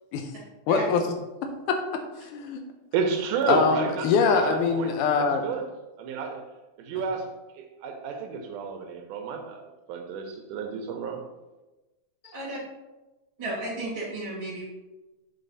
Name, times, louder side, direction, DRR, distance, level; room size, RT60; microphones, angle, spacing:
voice 1, 0.7-1.0 1.4-2.6 3.5-5.4, left 5 dB, 90° left, 5 dB, 2.2 m, -24 dB
voice 2, 2.9-5.7 6.0-6.4 6.8-9.6 9.9-11.2, right 5 dB, 90° right, 5 dB, 2.4 m, -31 dB
voice 3, 13.4-14.6, right 1 dB, 45° right, -6 dB, 2.7 m, -33 dB
8.1 x 4.1 x 4.0 m, 1.1 s
omnidirectional pair, 3.5 m